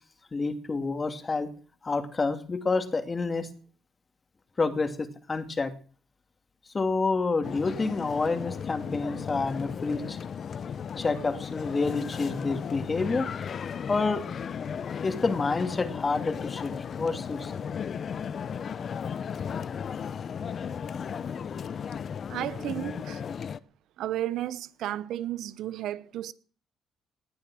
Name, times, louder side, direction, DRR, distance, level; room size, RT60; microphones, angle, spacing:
voice 1, 0.3-1.5 1.8-3.5 4.6-5.7 6.7-10.2 11.0-13.3 13.9-14.2 15.0-17.6 20.9-21.2, left 3 dB, 30° left, 2.6 m, -28 dB
sound 1, 7.4-23.6, left 7 dB, 55° left, 0.8 m, -35 dB
voice 2, 22.3-23.2 24.0-26.3, right 13 dB, 85° right, 0.9 m, -33 dB
19.0 x 10.5 x 6.2 m
cardioid pair, 90°, 0 cm